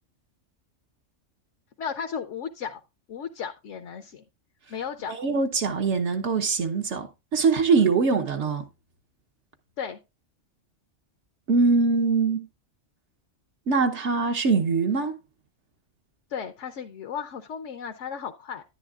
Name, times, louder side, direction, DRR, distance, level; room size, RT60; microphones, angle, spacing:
voice 1, 1.8-2.8 3.1-4.2 4.7-5.1 7.7-7.9 9.8-10.0 16.3-18.6, left 7 dB, 75° left, 1.0 m, -35 dB
voice 2, 5.1-8.7 11.5-12.5 13.7-15.2, right 4 dB, 70° right, 1.2 m, -23 dB
10.5 x 9.9 x 2.3 m
omnidirectional pair, 1.3 m